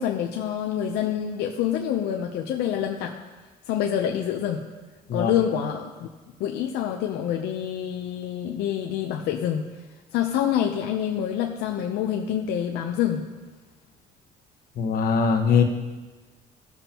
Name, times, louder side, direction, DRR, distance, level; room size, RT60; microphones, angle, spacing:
voice 1, 0.0-3.2 3.7-4.7 5.1-6.1 6.4-9.7 10.1-13.3, left 9 dB, 85° left, 2 dB, 0.7 m, -26 dB
voice 2, 14.8-15.6, left 6 dB, 60° left, 3 dB, 1.3 m, -21 dB
16.5 x 7.0 x 3.0 m, 1.3 s
cardioid pair, 110°, 17 cm